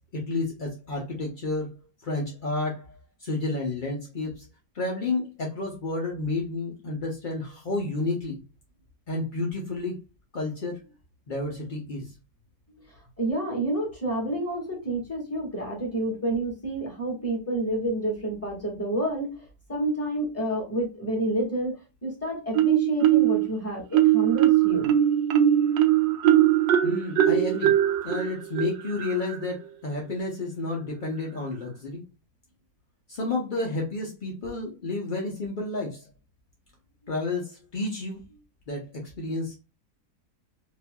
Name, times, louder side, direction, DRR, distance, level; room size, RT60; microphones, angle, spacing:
voice 1, 0.1-1.7 2.0-4.4 4.7-8.4 9.1-9.9 10.3-10.8 11.3-12.1 26.8-27.8 28.0-32.0 33.1-36.1 37.1-38.2 38.7-39.5, left 2 dB, 60° left, -1 dB, 0.5 m, -31 dB
voice 2, 13.2-21.7 22.0-24.9, right 1 dB, 10° left, -3 dB, 1.5 m, -29 dB
Marimba xylophone, 22.5-23.5 23.9-29.4, right 12 dB, 90° right, 1.3 m, -21 dB
5.2 x 2.6 x 2.2 m, 0.29 s
omnidirectional pair, 1.9 m